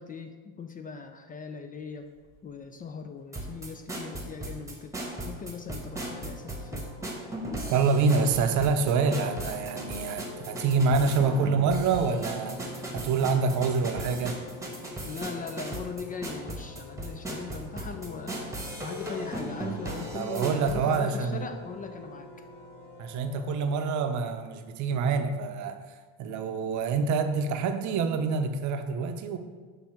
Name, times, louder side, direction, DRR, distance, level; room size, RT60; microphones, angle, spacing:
voice 1, 0.0-2.1 2.4-6.9 15.0-18.4 18.8-22.3, left 5 dB, 25° left, 7 dB, 0.4 m, -40 dB
sound 1, 3.3-21.0, right 1 dB, 10° right, 1.1 m, -37 dB
sound 2, 5.8-24.3, left 4 dB, 60° left, 1.6 m, -46 dB
voice 2, 7.7-14.4 20.1-21.5 23.0-25.8 26.2-29.4, right 4 dB, 55° right, 7 dB, 0.7 m, -26 dB
6.4 x 2.7 x 5.7 m, 1.4 s
supercardioid pair, 100°, 34 cm